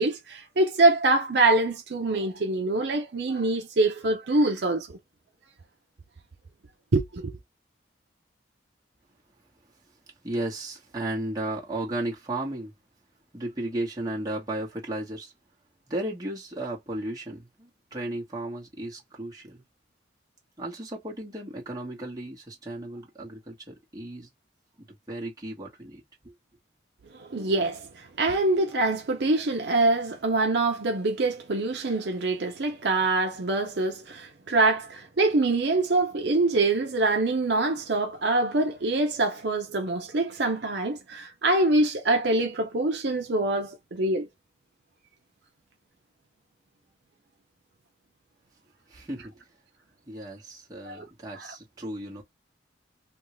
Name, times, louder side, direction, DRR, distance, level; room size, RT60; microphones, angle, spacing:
voice 1, 0.0-4.9 6.9-7.3 27.1-44.3 50.8-51.1 51.4-51.5, right 2 dB, 60° right, 0.6 m, -25 dB
voice 2, 10.2-12.7 13.3-15.3 15.9-19.6 20.6-24.3 24.8-26.3 48.9-49.4 50.1-52.2, right 1 dB, 20° right, 1.2 m, -34 dB
3.5 x 2.3 x 3.0 m
head